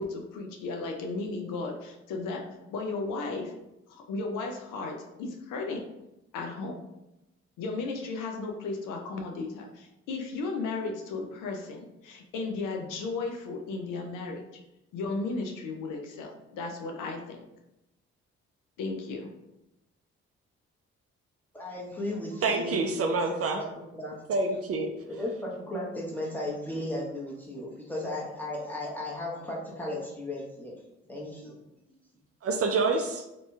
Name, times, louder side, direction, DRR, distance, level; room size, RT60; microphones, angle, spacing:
voice 1, 0.0-2.4 2.7-3.5 3.9-5.8 6.3-6.8 7.6-14.4 14.9-17.5 18.8-19.3, left 3 dB, 75° left, 2 dB, 0.5 m, -35 dB
voice 2, 21.5-23.7 23.9-24.2 25.1-30.7 31.1-31.6, left 1 dB, 5° left, -4 dB, 1.0 m, -35 dB
voice 3, 22.4-23.6 24.3-24.9 32.4-33.2, right 3 dB, 45° right, 4 dB, 0.5 m, -27 dB
2.9 x 2.6 x 2.3 m, 0.92 s
hypercardioid pair, 45°, 32 cm